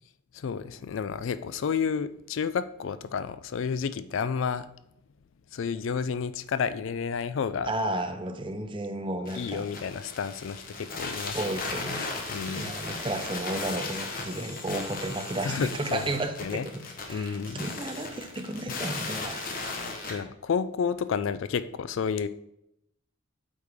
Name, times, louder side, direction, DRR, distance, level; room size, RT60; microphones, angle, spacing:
voice 1, 0.3-4.7 5.5-7.7 9.3-11.4 12.3-12.8 15.4-16.7 17.1-17.6 18.7-18.8 19.8-22.3, left 6 dB, 70° left, 14 dB, 0.4 m, -31 dB
voice 2, 7.6-9.7 11.3-12.1 12.5-16.8 17.1-19.7 20.0-20.2, right 1 dB, 25° right, 6 dB, 0.6 m, -33 dB
sound 1, 9.3-20.1, left 3 dB, 40° left, 1.1 m, -36 dB
8.3 x 4.8 x 3.5 m, 0.78 s
head